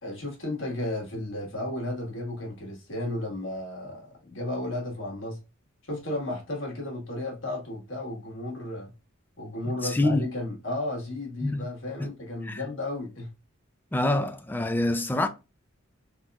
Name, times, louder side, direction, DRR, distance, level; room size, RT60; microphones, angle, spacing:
voice 1, 0.0-5.4 5.9-8.9 9.4-13.3, left 1 dB, 65° left, 1.5 m, -33 dB
voice 2, 9.8-10.3 11.4-11.7 12.0-12.1 12.4-12.6 13.9-15.3, left 2 dB, 10° left, 0.3 m, -26 dB
3.7 x 2.9 x 2.3 m
head